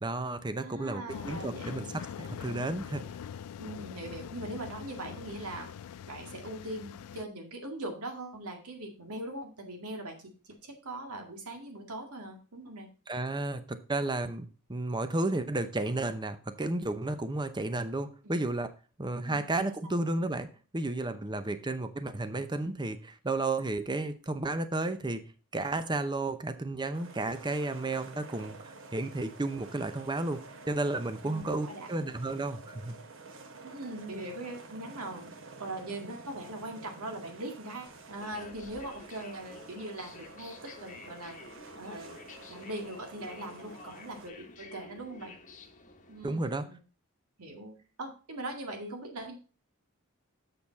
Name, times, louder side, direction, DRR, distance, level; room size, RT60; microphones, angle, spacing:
voice 1, 0.0-3.0 13.1-18.7 19.0-25.3 25.5-30.4 30.7-33.0 46.2-46.6, right 2 dB, 20° right, 11 dB, 0.7 m, -32 dB
voice 2, 0.6-1.7 3.6-5.7 6.1-12.9 18.2-18.4 19.2-19.5 19.8-19.9 31.2-32.1 33.6-41.4 41.7-42.2 42.5-45.4 46.1-46.8 47.4-49.4, right 1 dB, 80° right, 4 dB, 2.0 m, -41 dB
sound 1, 1.1-7.2, left 8 dB, 85° left, 0.3 m, -43 dB
sound 2, 26.9-44.3, right 3 dB, 60° right, 1.1 m, -50 dB
sound 3, 37.9-46.5, left 3 dB, 35° left, 1.2 m, -51 dB
7.2 x 6.8 x 4.0 m, 0.35 s
head